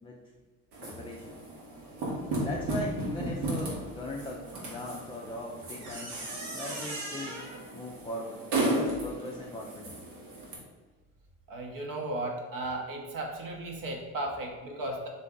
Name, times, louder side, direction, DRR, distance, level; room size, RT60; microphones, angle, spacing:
sound 1, 0.7-10.5, right 1 dB, 70° right, 1.4 m, -35 dB
voice 1, 0.8-1.4 2.4-6.2 6.5-7.4 7.7-8.4 8.7-10.0, left 1 dB, 15° left, -2 dB, 0.5 m, -39 dB
voice 2, 11.5-15.1, right 1 dB, 50° right, 1 dB, 1.0 m, -35 dB
4.0 x 3.3 x 3.7 m, 1.3 s
hypercardioid pair, 65°, 44 cm